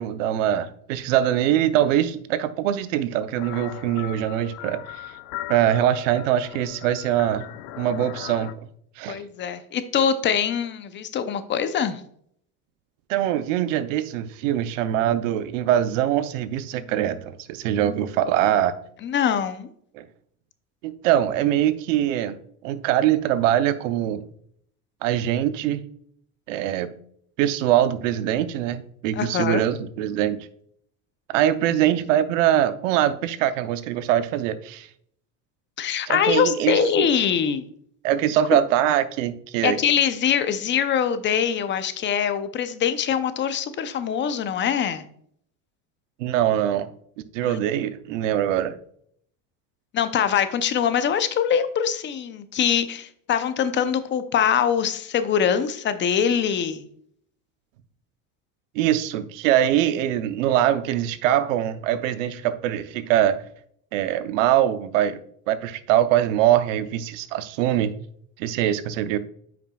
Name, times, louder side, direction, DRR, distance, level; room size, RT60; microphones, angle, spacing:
voice 1, 0.0-5.1 5.5-7.4 7.8-8.7 9.0-9.2 13.1-18.7 19.9-20.1 20.8-22.4 22.6-24.3 25.0-25.8 26.5-26.9 27.4-30.5 31.3-34.9 36.1-37.1 38.0-39.8 46.2-46.9 47.3-48.7 58.7-63.4 63.9-67.9 68.4-69.2, right 11 dB, 90° right, 13 dB, 0.7 m, -23 dB
sound 1, 3.4-8.5, left 14 dB, 75° left, 0.6 m, -38 dB
voice 2, 9.1-12.0 19.0-19.7 29.2-29.6 35.8-37.7 39.6-45.0 47.4-47.6 49.9-56.8, left 8 dB, 30° left, 11 dB, 0.6 m, -23 dB
8.9 x 5.9 x 2.3 m, 0.65 s
supercardioid pair, 125°, 37 cm